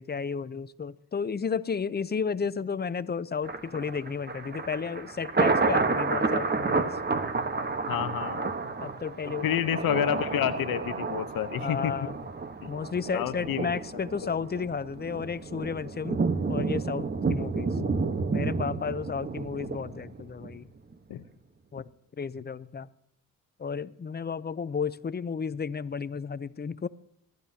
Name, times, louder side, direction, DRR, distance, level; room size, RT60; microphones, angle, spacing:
voice 1, 0.0-7.0 8.8-9.6 11.6-12.2 12.7-16.2 16.5-17.8 18.3-20.7 21.7-21.9 22.2-22.9 23.6-26.9, left 6 dB, 30° left, 0.6 m, -33 dB
Thunder, 3.4-20.6 20.9-21.0, right 4 dB, 30° right, 1.2 m, -30 dB
voice 2, 7.9-8.6 9.4-11.9 12.6-12.7 13.1-14.0 17.8-17.9 21.1-21.2, left 10 dB, 75° left, 0.9 m, -29 dB
24.0 x 12.0 x 2.8 m
cardioid pair, 70°, 35 cm